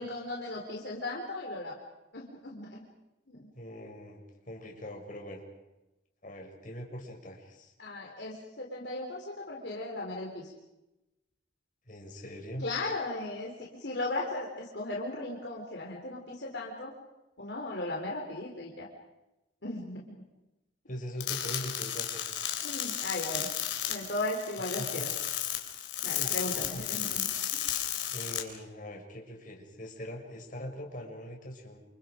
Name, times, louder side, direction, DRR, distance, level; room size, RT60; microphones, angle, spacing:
voice 1, 0.0-1.7 2.1-2.9 3.3-3.5 7.8-10.5 12.6-13.5 13.8-16.9 17.4-18.9 19.6-20.2 22.6-23.5 23.9-25.1 26.0-27.7, left 2 dB, 65° left, -2 dB, 4.0 m, -37 dB
voice 2, 3.5-5.4 6.2-7.7 11.9-12.7 20.9-22.2 24.8-25.1 26.1-27.0 28.1-31.8, equal, 45° left, 1 dB, 6.2 m, -42 dB
sound 1, 21.2-28.4, left 11 dB, 85° left, 4.2 m, -33 dB
29.5 x 28.5 x 5.2 m, 0.97 s
head